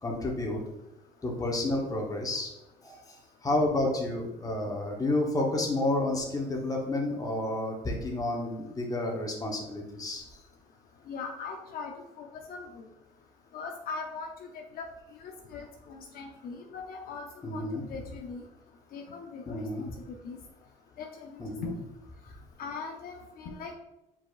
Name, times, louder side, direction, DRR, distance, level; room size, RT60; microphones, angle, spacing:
voice 1, 0.0-0.6 1.2-2.5 2.8-10.2 17.4-17.8 19.5-19.8 21.4-21.7, left 2 dB, 20° left, 0 dB, 1.0 m, -30 dB
voice 2, 11.1-11.9 12.2-12.9 13.5-14.3 14.7-14.9 15.2-17.2 17.5-18.4 18.9-19.9 20.2-20.4 21.0-21.8 22.6-23.8, left 4 dB, 60° left, 2 dB, 0.6 m, -40 dB
4.8 x 4.1 x 2.4 m, 0.91 s
cardioid pair, 110°, 17 cm